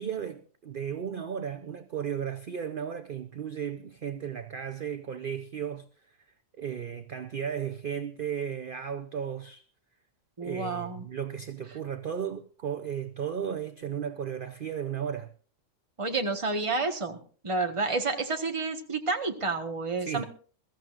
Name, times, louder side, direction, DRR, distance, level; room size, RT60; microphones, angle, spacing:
voice 1, 0.0-6.2 6.5-9.6 10.4-15.3 20.0-20.2, right 8 dB, 50° right, 0.8 m, -35 dB
voice 2, 10.4-11.0 16.0-17.2 17.4-20.2, right 3 dB, 25° right, 1.4 m, -30 dB
22.0 x 14.0 x 2.5 m
omnidirectional pair, 1.4 m